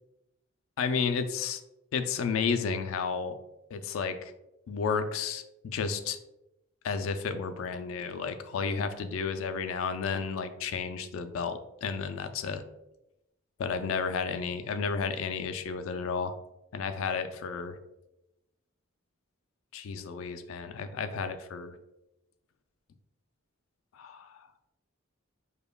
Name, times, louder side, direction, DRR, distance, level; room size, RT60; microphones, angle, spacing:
voice 1, 0.8-1.6 1.9-3.4 3.7-4.3 4.7-6.2 6.8-12.6 13.6-16.3 16.7-17.8 19.7-21.8 23.9-24.4, left 5 dB, 75° left, 9 dB, 0.3 m, -32 dB
5.2 x 2.2 x 2.2 m, 0.90 s
head